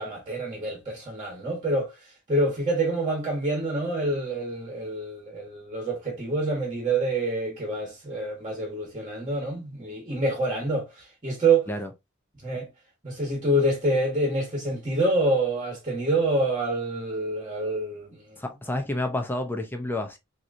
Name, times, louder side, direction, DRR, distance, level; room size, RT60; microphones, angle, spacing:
voice 1, 0.0-1.9 2.3-10.9 11.2-11.6 12.4-12.7 13.0-18.2, right 2 dB, 25° right, 1.3 m, -26 dB
voice 2, 18.4-20.2, left 1 dB, 10° left, 0.6 m, -29 dB
3.7 x 2.9 x 2.6 m
head